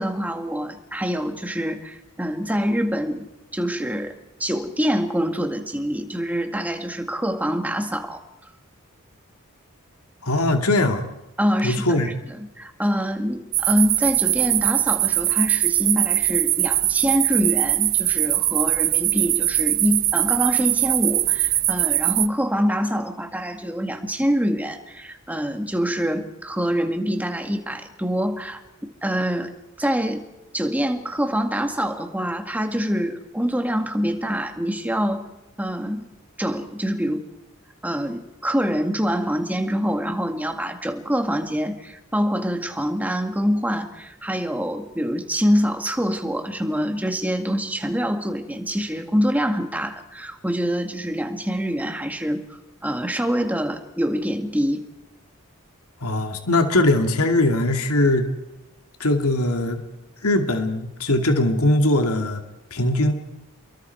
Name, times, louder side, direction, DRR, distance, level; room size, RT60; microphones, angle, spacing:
voice 1, 0.0-3.3 3.5-4.1 4.4-8.2 11.4-28.6 29.0-29.5 29.8-30.2 30.5-35.2 35.6-36.1 36.4-37.2 37.8-52.5 52.8-54.8, equal, 5° right, 5 dB, 2.0 m, -25 dB
voice 2, 10.2-11.1 11.6-12.1 56.0-58.3 59.0-59.8 60.2-62.4 62.7-63.1, left 1 dB, 85° left, 5 dB, 2.4 m, -20 dB
sound 1, 13.5-22.3, right 14 dB, 40° right, 0.7 m, -21 dB
30.0 x 22.5 x 4.7 m, 0.99 s
head